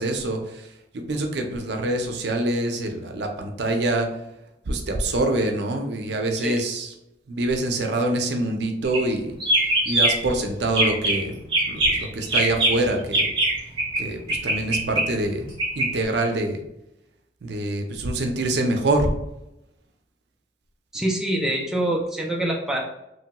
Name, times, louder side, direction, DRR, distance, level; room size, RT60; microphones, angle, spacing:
voice 1, 0.0-4.1 4.7-6.9 7.3-9.4 9.9-13.3 14.0-15.5 15.8-16.6 17.4-19.1, right 2 dB, 70° right, 4 dB, 0.5 m, -25 dB
sound 1, 8.8-9.1 9.4-10.3 10.7-11.2 11.5-14.0 14.3-15.9, right 1 dB, 30° right, 0.8 m, -22 dB
voice 2, 20.9-22.8, right 1 dB, 5° right, -1 dB, 0.3 m, -25 dB
3.0 x 2.2 x 2.8 m, 0.87 s
head